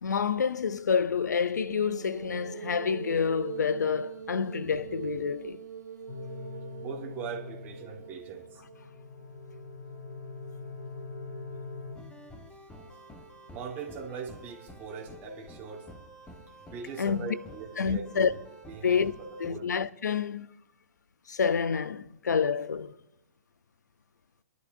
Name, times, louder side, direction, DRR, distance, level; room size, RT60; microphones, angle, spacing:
voice 1, 0.0-5.7 17.0-17.3 17.8-18.3 18.8-19.1 19.4-20.5 21.3-23.0, left 6 dB, 90° left, 0.5 m, -28 dB
sound 1, 1.6-9.0, right 6 dB, 85° right, 0.7 m, -42 dB
sound 2, 6.1-11.9, left 4 dB, 45° left, 3.4 m, -43 dB
voice 2, 6.8-8.6 13.5-15.9 16.6-18.4 18.7-19.7, right 5 dB, 20° right, 1.6 m, -40 dB
sound 3, 11.9-19.5, equal, 10° left, 1.3 m, -50 dB
25.0 x 11.0 x 2.6 m
hypercardioid pair, 140°, 9 cm